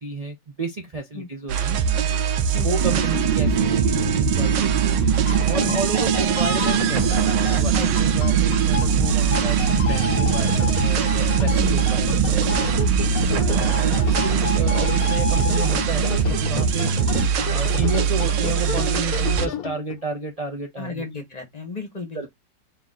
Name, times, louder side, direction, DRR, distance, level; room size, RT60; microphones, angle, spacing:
voice 1, 0.0-1.9 2.6-5.0 5.4-12.7 13.3-16.9 17.5-21.0 22.1-22.3, right 3 dB, 75° right, 0.3 m, -31 dB
sound 1, 1.5-19.5, right 7 dB, 90° right, 1.4 m, -23 dB
sound 2, 2.8-17.2, right 7 dB, 35° right, 0.9 m, -25 dB
sound 3, 5.0-20.0, left 8 dB, 65° left, 1.0 m, -31 dB
voice 2, 7.8-8.1 11.6-11.8 20.8-22.3, left 4 dB, 30° left, 0.9 m, -33 dB
4.0 x 2.9 x 3.6 m
omnidirectional pair, 1.9 m